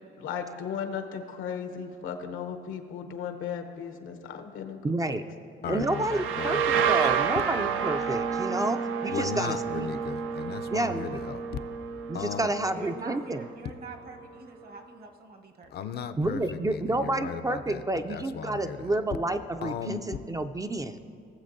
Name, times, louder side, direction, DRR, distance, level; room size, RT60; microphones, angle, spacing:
voice 1, 0.2-4.8 5.1-5.2, left 7 dB, 85° left, 7 dB, 0.9 m, -36 dB
voice 2, 4.8-5.2 5.7-9.9 10.7-11.2 12.1-13.5 16.2-21.0, right 2 dB, 15° right, 8 dB, 0.3 m, -30 dB
voice 3, 5.6-7.2 9.1-11.6 12.1-12.5 15.7-17.8 18.1-19.0 19.6-20.0, left 7 dB, 55° left, 11 dB, 0.5 m, -36 dB
sound 1, 5.8-13.4, right 7 dB, 85° right, 0.5 m, -30 dB
voice 4, 12.7-15.9, right 2 dB, 50° right, 5 dB, 1.0 m, -44 dB
17.5 x 7.3 x 2.6 m, 2.3 s
cardioid pair, 90°, 20 cm